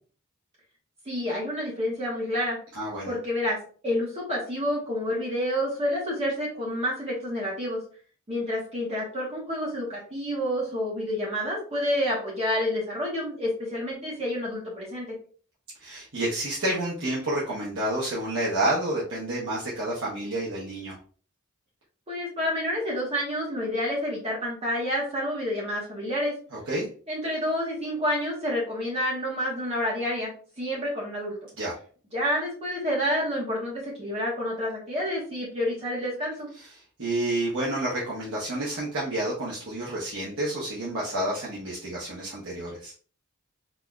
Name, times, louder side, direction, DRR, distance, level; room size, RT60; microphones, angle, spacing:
voice 1, 1.0-2.6 3.1-3.6 3.8-7.8 8.3-15.2 22.1-26.3 27.1-31.4 32.1-36.5, equal, 30° right, -4 dB, 1.1 m, -29 dB
voice 2, 2.7-3.1 15.8-21.0 26.5-26.9 31.6-31.8 36.6-36.7 37.0-42.9, right 1 dB, 65° right, -6 dB, 1.0 m, -29 dB
4.1 x 2.7 x 2.4 m, 0.42 s
head